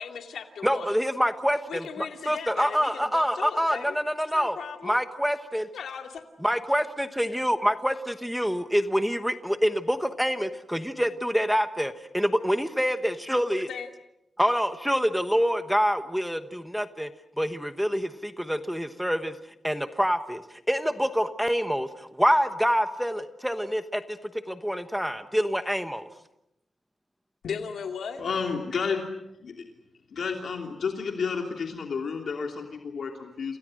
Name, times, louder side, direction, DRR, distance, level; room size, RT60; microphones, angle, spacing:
voice 1, 0.0-0.9 1.7-4.0 4.3-5.0 5.7-6.2 13.7-13.9 27.4-28.2, left 6 dB, 80° left, 4 dB, 2.4 m, -37 dB
voice 2, 0.6-4.6 4.8-5.7 6.4-13.7 14.4-17.1 17.4-19.4 19.6-24.2 24.5-26.1, equal, ahead, 9 dB, 1.1 m, -26 dB
voice 3, 28.2-29.0 29.4-29.5 30.1-33.6, left 5 dB, 60° left, 3 dB, 3.0 m, -31 dB
29.5 x 28.0 x 6.5 m, 0.85 s
wide cardioid pair, 155°, 0 cm